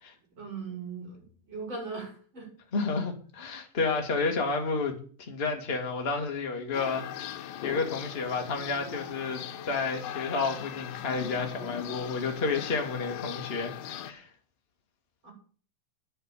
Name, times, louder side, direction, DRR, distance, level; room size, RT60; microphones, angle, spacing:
voice 1, 0.3-2.5 15.2-15.3, right 4 dB, 35° right, 7.4 m, -39 dB
voice 2, 2.7-14.3, left 4 dB, 20° left, 1.8 m, -31 dB
sound 1, 6.7-14.1, left 10 dB, 80° left, 2.5 m, -40 dB
10.0 x 7.4 x 9.1 m
omnidirectional pair, 3.7 m